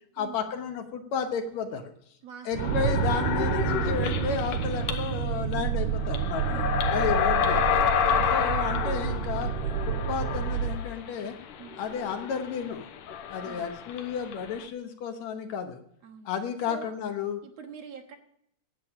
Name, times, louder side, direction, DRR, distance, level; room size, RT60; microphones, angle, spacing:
voice 1, 0.2-1.9 2.5-6.6 6.9-7.8 8.3-11.3 11.8-12.9 13.3-15.8 16.3-17.4, left 6 dB, 70° left, 6 dB, 2.1 m, -32 dB
voice 2, 2.2-2.9 6.5-6.9 8.1-8.4 11.6-11.8 13.4-13.7 16.0-16.3 16.7-17.0 17.4-18.2, right 6 dB, 60° right, 4 dB, 2.2 m, -45 dB
sound 1, 2.5-10.8, right 7 dB, 80° right, 2.0 m, -29 dB
sound 2, 2.6-5.2 5.5-5.6 6.0-14.6, left 8 dB, 90° left, 2.6 m, -30 dB
10.5 x 7.8 x 8.8 m, 0.70 s
omnidirectional pair, 3.6 m